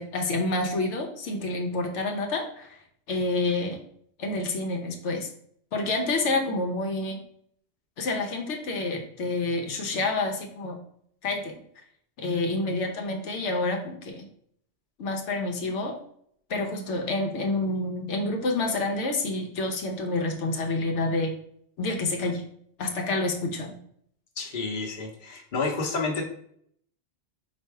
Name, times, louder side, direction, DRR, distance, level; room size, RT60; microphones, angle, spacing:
voice 1, 0.0-2.8 3.1-3.8 4.2-5.3 5.7-7.2 8.0-10.8 11.2-11.6 12.2-14.3 15.0-16.0 16.5-21.3 21.8-22.4 22.8-23.8, left 2 dB, 85° left, 3 dB, 1.0 m, -28 dB
voice 2, 24.4-26.2, left 3 dB, 50° left, 0 dB, 1.0 m, -30 dB
4.2 x 2.5 x 4.6 m, 0.65 s
omnidirectional pair, 1.2 m